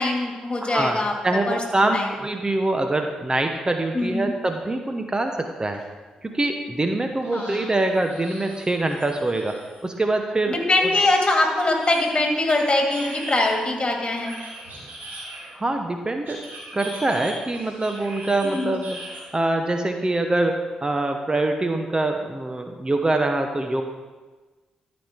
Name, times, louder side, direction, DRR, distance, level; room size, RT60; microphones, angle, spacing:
voice 1, 0.0-1.1 1.5-1.6 1.9-2.1 3.9-4.3 7.3-7.7 10.5-14.3 18.4-18.8, left 2 dB, 35° left, 1 dB, 2.3 m, -22 dB
voice 2, 0.6-1.0 1.2-5.8 6.2-9.6 9.8-10.5 10.8-10.9 15.5-16.4 16.7-19.0 19.3-23.8, right 2 dB, 25° right, 5 dB, 1.0 m, -24 dB
sound 1, 5.7-5.8 6.2-6.3 7.2-9.8 10.9-13.6 14.2-15.7 16.2-19.2, right 1 dB, 75° right, 3.3 m, -40 dB
13.0 x 5.4 x 4.5 m, 1.3 s
hypercardioid pair, 40°, 3 cm